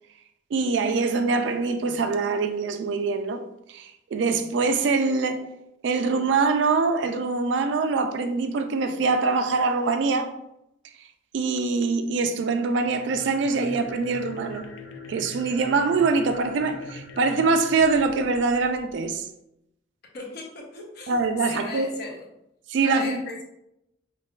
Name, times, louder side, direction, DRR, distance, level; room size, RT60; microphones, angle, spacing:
voice 1, 0.5-3.4 3.7-5.4 5.8-10.3 11.3-14.7 15.1-19.3 21.1-21.9 22.7-23.2, right 4 dB, 75° right, 0.3 m, -24 dB
sound 1, 12.7-19.0, left 2 dB, 85° left, 0.4 m, -43 dB
voice 2, 20.1-21.1 21.4-22.3 22.8-23.4, left 3 dB, 60° left, 0.8 m, -36 dB
5.4 x 2.3 x 2.3 m
head